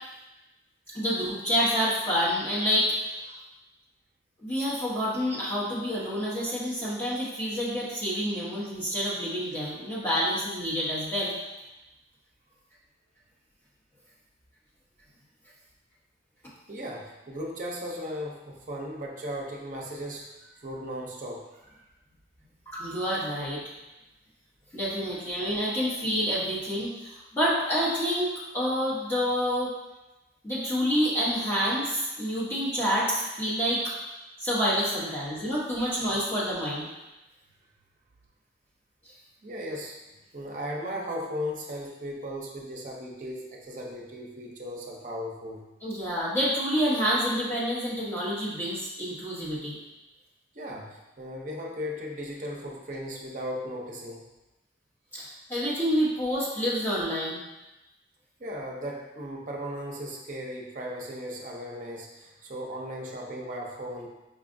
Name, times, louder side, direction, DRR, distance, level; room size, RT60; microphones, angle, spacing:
voice 1, 0.9-3.2 4.4-11.3 22.7-23.6 24.7-29.7 30.4-33.8 34.4-36.9 45.8-49.8 55.1-57.4, equal, 15° left, -9 dB, 0.9 m, -28 dB
voice 2, 16.7-21.9 25.0-25.4 35.0-36.2 39.4-39.9 40.3-45.7 50.5-54.3 58.4-64.1, equal, 45° right, -2 dB, 0.6 m, -37 dB
5.1 x 2.4 x 2.5 m, 1.0 s
head